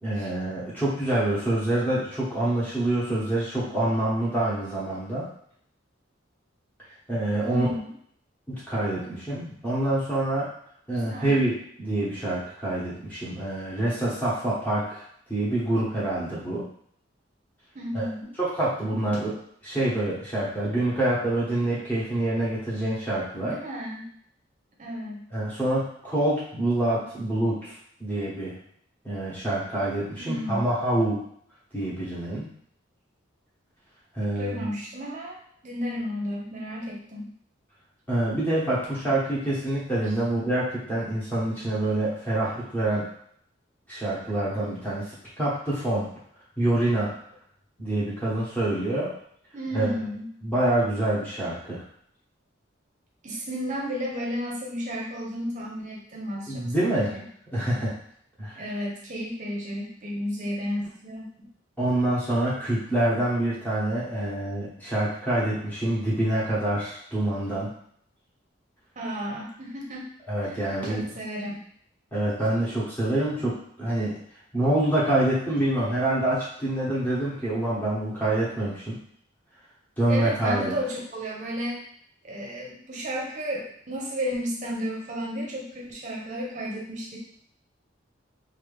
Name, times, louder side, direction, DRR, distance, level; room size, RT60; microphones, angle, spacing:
voice 1, 0.0-5.3 7.1-7.7 8.5-10.5 10.9-15.0 15.3-16.6 17.9-18.1 18.4-19.4 19.6-23.5 25.3-27.7 28.0-28.5 29.0-31.2 31.7-32.5 34.1-34.7 38.1-43.0 43.9-46.1 46.6-47.1 47.8-49.1 49.7-49.9 50.4-51.8 56.5-57.1 57.5-57.9 58.4-58.8 61.8-67.7 70.3-71.1 72.1-74.2 74.5-79.0 80.0-80.7, right 1 dB, 10° left, -8 dB, 1.1 m, -26 dB
voice 2, 7.4-7.9 10.9-11.4 17.7-18.3 23.3-24.1 24.8-25.2 30.2-30.7 34.4-37.3 49.5-50.3 53.2-57.2 58.6-61.5 69.0-70.1 70.4-71.6 80.1-81.8 82.2-87.2, equal, 40° right, -2 dB, 0.8 m, -33 dB
3.0 x 2.5 x 3.3 m, 0.64 s
head